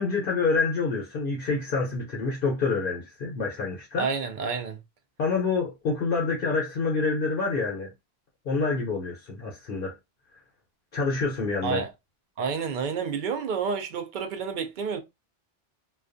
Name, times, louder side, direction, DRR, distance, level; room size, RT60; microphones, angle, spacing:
voice 1, 0.0-4.1 5.2-7.9 8.4-10.0 10.9-11.8, left 4 dB, 60° left, 0.8 m, -27 dB
voice 2, 4.0-4.8 11.6-11.9 12.4-15.0, right 5 dB, 55° right, 0.6 m, -29 dB
2.3 x 2.2 x 2.5 m
omnidirectional pair, 1.1 m